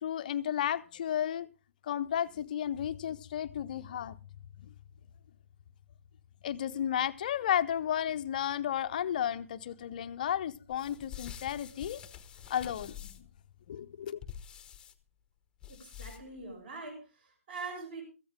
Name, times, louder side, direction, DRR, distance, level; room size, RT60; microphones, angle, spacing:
voice 1, 0.0-1.5 1.8-4.2 6.4-12.0 12.5-13.3 13.7-14.2, left 10 dB, 35° left, 0.6 m, -33 dB
sound 1, 10.7-13.4 14.2-14.9 15.6-16.4, left 9 dB, 10° left, 0.9 m, -47 dB
voice 2, 15.7-18.0, right 3 dB, 40° right, 6.5 m, -43 dB
16.5 x 14.5 x 3.6 m
figure-of-eight pair, 140°, 8 cm